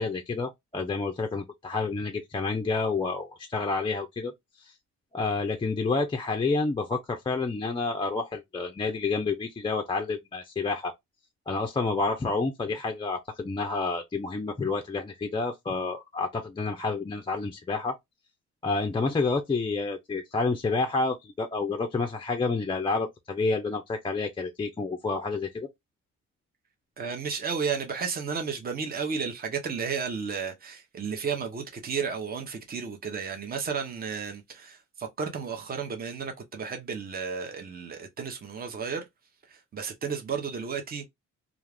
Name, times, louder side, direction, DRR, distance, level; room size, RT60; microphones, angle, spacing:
voice 1, 0.0-4.3 4.6-4.7 5.1-10.9 11.5-18.0 18.6-25.7, left 3 dB, 15° left, 0.4 m, -29 dB
voice 2, 27.0-39.0 39.5-41.1, right 6 dB, 30° right, 0.7 m, -33 dB
2.5 x 2.4 x 3.3 m
cardioid pair, 90°, 30 cm